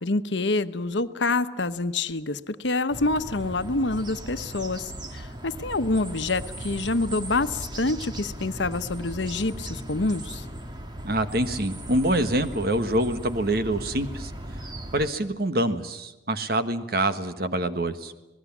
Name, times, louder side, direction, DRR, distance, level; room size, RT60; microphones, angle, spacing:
voice 1, 0.0-10.4, left 2 dB, 80° left, 11 dB, 1.0 m, -27 dB
sound 1, 2.9-15.1, right 1 dB, 25° right, 1.7 m, -38 dB
voice 2, 11.0-14.3 14.9-18.1, right 1 dB, 55° right, 9 dB, 1.5 m, -25 dB
27.0 x 19.5 x 7.3 m, 1.0 s
head